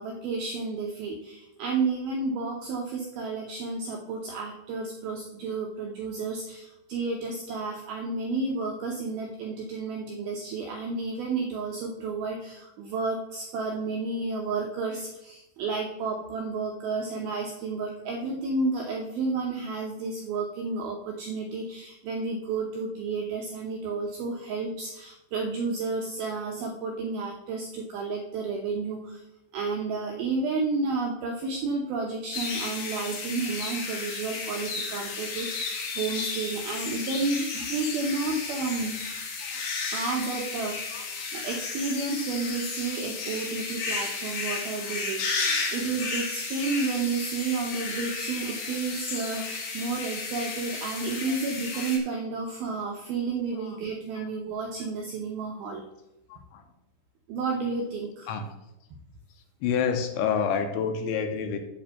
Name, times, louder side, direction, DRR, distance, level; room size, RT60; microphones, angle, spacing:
voice 1, 0.0-29.2 29.5-39.0 39.9-55.8 57.3-58.3, right 4 dB, 80° right, 1 dB, 2.2 m, -31 dB
sound 1, 32.3-52.0, left 4 dB, 65° left, 3.4 m, -33 dB
voice 2, 45.4-45.8 48.4-48.6 51.3-51.4 51.7-51.9 53.5-53.8 54.1-54.3 54.8-54.9 56.3-56.6 58.2-58.5 59.6-61.6, left 7 dB, 80° left, 6 dB, 3.0 m, -30 dB
9.2 x 4.4 x 7.5 m, 0.89 s
omnidirectional pair, 5.4 m